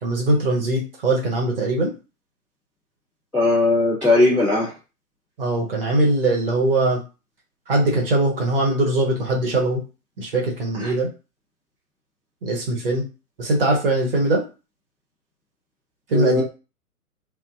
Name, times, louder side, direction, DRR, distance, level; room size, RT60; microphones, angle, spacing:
voice 1, 0.0-1.9 5.4-7.0 7.7-9.8 10.2-11.1 12.4-13.1 13.4-14.4 16.1-16.4, right 2 dB, 40° right, -1 dB, 0.8 m, -21 dB
voice 2, 3.3-4.7 10.8-10.9 16.1-16.4, left 2 dB, 5° left, -19 dB, 0.5 m, -18 dB
2.5 x 2.1 x 2.4 m, 0.31 s
figure-of-eight pair, 125°, 46 cm